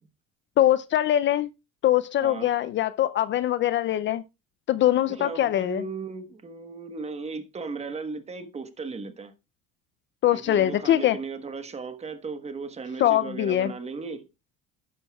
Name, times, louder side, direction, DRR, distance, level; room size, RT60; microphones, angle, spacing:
voice 1, 0.6-1.5 1.8-4.2 4.7-5.8 10.2-11.2 13.0-13.7, left 12 dB, 40° left, 0.4 m, -22 dB
voice 2, 2.2-2.5 5.1-9.3 10.3-14.3, right 4 dB, 20° right, 1.2 m, -36 dB
11.0 x 10.5 x 2.3 m
cardioid pair, 140°, 30 cm